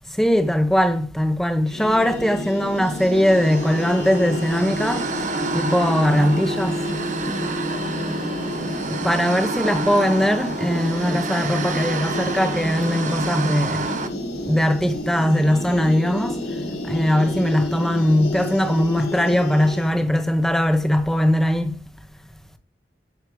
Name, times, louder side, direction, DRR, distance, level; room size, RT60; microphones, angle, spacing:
voice 1, 0.2-5.1 5.5-6.8 8.9-13.9 14.5-16.4 16.8-21.8, equal, ahead, 1.4 m, -20 dB
sound 1, 1.7-19.9, left 1 dB, 80° left, 5.4 m, -30 dB
sound 2, 2.8-14.1, right 3 dB, 45° right, 1.1 m, -29 dB
15.0 x 7.0 x 3.3 m
head